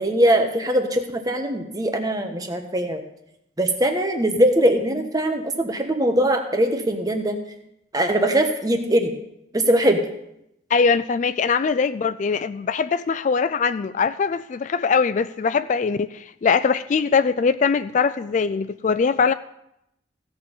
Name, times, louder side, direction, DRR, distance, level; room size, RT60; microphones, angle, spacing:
voice 1, 0.0-3.0 3.6-7.4 7.9-9.1 9.5-10.0, right 1 dB, 20° right, 5 dB, 1.2 m, -21 dB
voice 2, 10.7-19.3, left 5 dB, 40° left, 13 dB, 0.3 m, -21 dB
16.0 x 7.0 x 5.5 m, 0.80 s
head